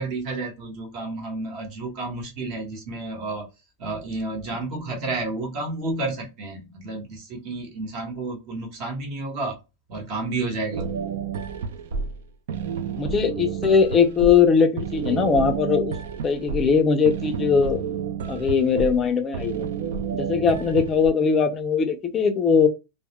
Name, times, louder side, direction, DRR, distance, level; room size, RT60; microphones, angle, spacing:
voice 1, 0.0-3.5 3.8-9.5 9.9-10.9, right 2 dB, 40° right, 1.0 m, -31 dB
sound 1, 10.7-21.1, right 6 dB, 75° right, 0.3 m, -30 dB
voice 2, 13.0-16.0 16.2-17.8 18.3-19.7 20.1-22.7, left 6 dB, 20° left, 0.4 m, -20 dB
2.2 x 2.1 x 2.9 m
supercardioid pair, 160°, 0 cm